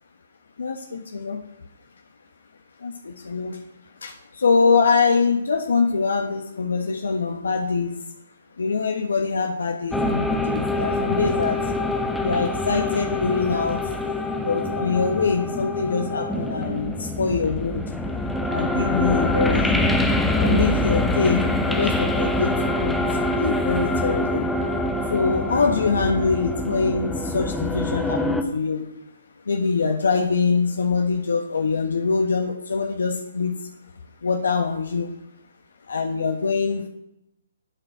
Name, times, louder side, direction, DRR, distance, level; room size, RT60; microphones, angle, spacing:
voice 1, 0.6-1.4 2.8-3.6 4.0-8.0 8.6-11.6 12.2-13.9 14.4-17.8 18.5-19.9 20.3-24.5 25.1-28.8 29.5-33.6 34.2-35.1 35.9-36.9, left 4 dB, 80° left, 3 dB, 1.2 m, -24 dB
sound 1, 9.9-28.4, left 1 dB, 5° left, 0.9 m, -25 dB
12.5 x 7.8 x 5.0 m, 0.86 s
hypercardioid pair, 145°, 0 cm